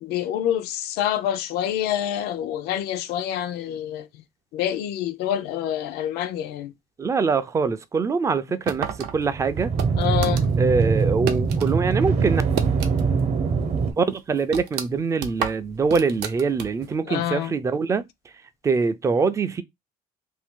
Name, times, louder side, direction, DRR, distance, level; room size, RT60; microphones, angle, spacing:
voice 1, 0.0-4.1 4.5-6.7 10.0-10.5 17.1-17.5, left 10 dB, 80° left, 0.4 m, -27 dB
voice 2, 7.0-9.7 10.6-12.4 14.0-18.0 18.6-19.6, right 4 dB, 20° right, 0.4 m, -23 dB
sound 1, 8.7-11.8 12.1-13.3 13.6-13.7 14.1-17.0, right 9 dB, 90° right, 0.7 m, -32 dB
sound 2, 8.9-13.9, right 5 dB, 40° right, 0.8 m, -23 dB
2.7 x 2.6 x 3.6 m
cardioid pair, 140°, 16 cm